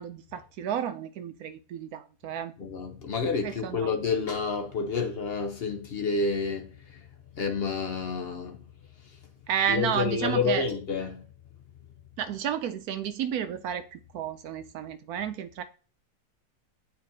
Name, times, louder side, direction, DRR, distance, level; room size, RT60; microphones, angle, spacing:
voice 1, 0.0-2.5 3.4-3.9 9.5-10.6 12.2-15.6, right 9 dB, 70° right, 0.9 m, -31 dB
voice 2, 2.6-7.0 7.4-8.6 9.7-11.2, left 4 dB, 50° left, 0.7 m, -29 dB
8.9 x 4.6 x 2.7 m
omnidirectional pair, 1.8 m